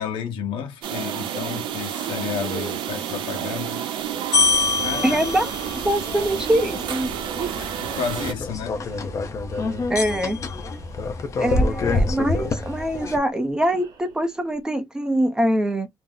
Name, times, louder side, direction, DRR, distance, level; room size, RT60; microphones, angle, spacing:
voice 1, 0.0-3.8 4.2-5.2 7.5-8.8, left 7 dB, 85° left, 1.0 m, -32 dB
sound 1, 0.8-8.3, right 10 dB, 80° right, 0.6 m, -30 dB
sound 2, 1.9-2.0 2.2-14.6, right 8 dB, 50° right, 0.8 m, -43 dB
sound 3, 4.3-13.2, left 3 dB, 40° left, 0.6 m, -26 dB
voice 2, 5.0-5.5 5.7-7.1 9.9-10.4 11.4-15.9, right 1 dB, 10° right, 0.6 m, -23 dB
2.7 x 2.0 x 3.7 m
cardioid pair, 145°, 8 cm